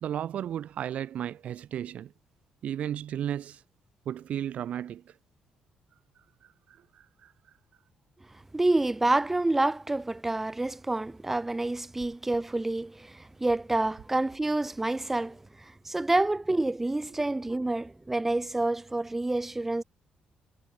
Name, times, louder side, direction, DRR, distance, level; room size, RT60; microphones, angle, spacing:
voice 1, 0.0-2.1 2.6-3.6 4.1-5.1 6.4-7.3, right 10 dB, 55° right, 2.0 m, -34 dB
voice 2, 8.5-19.8, right 2 dB, 10° right, 3.6 m, -28 dB
cardioid pair, 165°, 3 cm